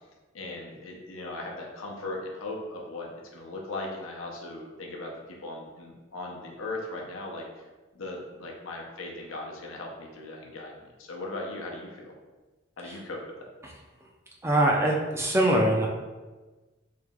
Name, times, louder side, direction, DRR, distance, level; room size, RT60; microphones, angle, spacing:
voice 1, 0.3-7.7 7.9-12.1 12.8-13.5, left 2 dB, 90° left, -1 dB, 0.8 m, -38 dB
voice 2, 14.4-15.9, right 1 dB, 15° right, -1 dB, 0.4 m, -23 dB
3.3 x 2.9 x 3.5 m, 1.2 s
head